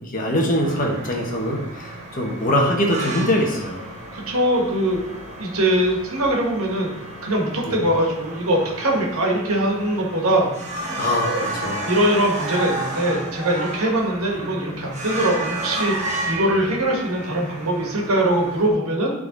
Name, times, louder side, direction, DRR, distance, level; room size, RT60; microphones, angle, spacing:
voice 1, 0.0-3.9 7.6-7.8 11.0-11.8, left 1 dB, 40° left, 0 dB, 1.1 m, -23 dB
sound 1, 0.5-18.7, right 2 dB, 35° right, 1.3 m, -32 dB
voice 2, 4.1-5.0 5.4-6.9 7.2-10.5 11.0-11.4 11.9-19.1, right 1 dB, 75° right, -1 dB, 1.7 m, -22 dB
10.5 x 3.9 x 3.9 m, 0.91 s
head